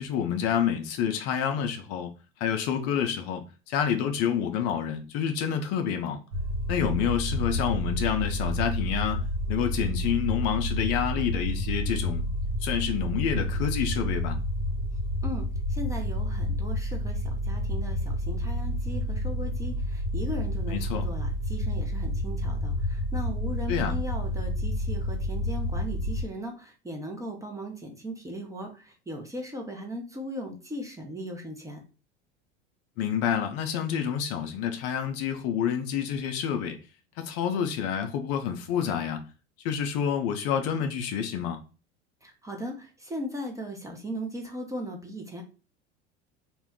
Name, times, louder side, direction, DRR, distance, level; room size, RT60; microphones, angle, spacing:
voice 1, 0.0-2.1 2.4-6.2 6.7-12.3 12.6-14.4 20.7-21.0 23.7-24.0 33.0-36.8 37.2-39.2 39.6-41.6, left 8 dB, 45° left, 0.5 m, -28 dB
sound 1, 6.3-26.2, equal, 65° right, 0.9 m, -29 dB
voice 2, 15.2-31.8 42.2-45.4, equal, 10° right, 0.5 m, -38 dB
2.2 x 2.1 x 3.5 m
hypercardioid pair, 80°, 34 cm